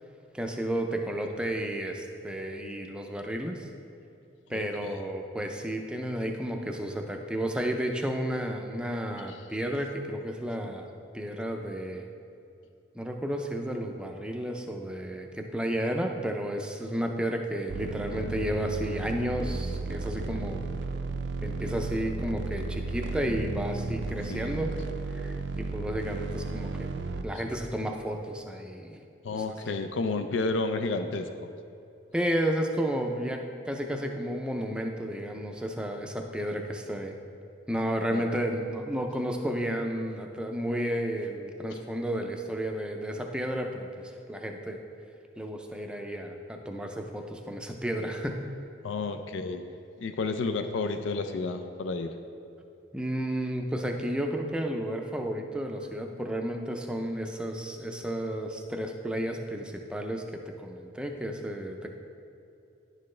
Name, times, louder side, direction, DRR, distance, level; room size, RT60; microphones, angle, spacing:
voice 1, 0.3-3.7 4.5-10.9 11.1-12.0 12.9-20.6 21.4-24.7 25.1-26.9 27.2-29.0 29.3-29.8 32.1-37.2 37.7-44.8 45.4-48.4 52.9-61.9, equal, 5° right, 3 dB, 0.4 m, -32 dB
voice 2, 4.5-5.0 9.3-9.4 24.3-24.6 29.2-31.3 38.1-38.2 48.8-49.6 50.0-52.1, left 3 dB, 85° left, 8 dB, 0.4 m, -31 dB
sound 1, 17.7-27.2, right 3 dB, 70° right, 0.4 m, -34 dB
10.5 x 6.5 x 3.2 m, 2.7 s
head